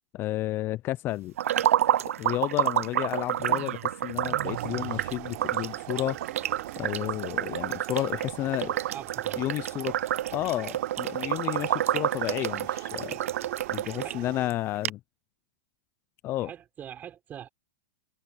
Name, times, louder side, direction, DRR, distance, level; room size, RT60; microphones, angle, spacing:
voice 1, 0.1-6.2 6.8-8.8 9.4-10.0 10.3-13.2 13.7-15.0 16.2-16.5, left 15 dB, 30° left, 0.5 m, -32 dB
sound 1, 1.4-14.1 14.5-14.6 14.8-14.9, right 11 dB, 85° right, 0.5 m, -29 dB
sound 2, 3.4-11.6, right 15 dB, 70° right, 1.2 m, -46 dB
sound 3, 4.4-14.5, right 30 dB, 50° right, 4.3 m, -42 dB
voice 2, 8.9-9.7 14.0-14.3 16.4-17.5, right 9 dB, 25° right, 5.0 m, -43 dB
hypercardioid pair, 135°, 7 cm